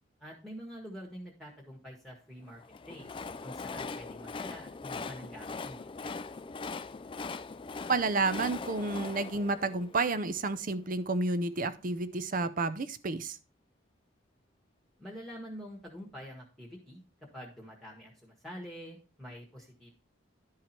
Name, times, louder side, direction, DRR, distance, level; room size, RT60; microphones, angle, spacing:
voice 1, 0.2-2.6 2.9-3.1 3.4-6.1 15.0-17.0 17.3-19.9, equal, ahead, -2 dB, 1.5 m, -46 dB
Train, 2.6-10.7, left 4 dB, 25° left, 0.3 m, -41 dB
voice 2, 7.9-13.4, right 3 dB, 45° right, 13 dB, 0.6 m, -30 dB
11.5 x 4.8 x 4.3 m, 0.34 s
head